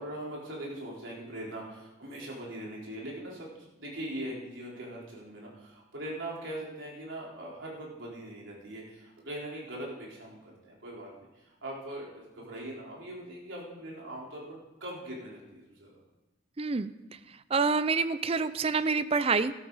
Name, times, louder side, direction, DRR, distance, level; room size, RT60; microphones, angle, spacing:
voice 1, 0.0-3.5 3.8-11.1 11.3-16.0, right 1 dB, 75° right, -4 dB, 4.0 m, -41 dB
voice 2, 16.6-16.9 17.5-19.5, right 4 dB, 30° right, 14 dB, 0.4 m, -27 dB
13.5 x 12.0 x 4.1 m, 1.0 s
head